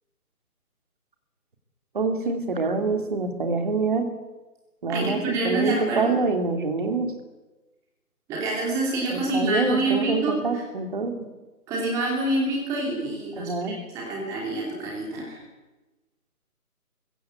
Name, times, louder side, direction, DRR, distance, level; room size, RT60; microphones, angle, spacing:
voice 1, 1.9-4.1 4.8-5.2 5.4-7.1 9.1-11.1 13.4-13.7, right 3 dB, 35° right, 5 dB, 2.8 m, -25 dB
voice 2, 4.9-6.1 8.3-10.6 11.7-15.4, right 2 dB, 5° right, -2 dB, 2.8 m, -27 dB
23.5 x 15.5 x 8.4 m, 1.1 s
figure-of-eight pair, 155°, 45 cm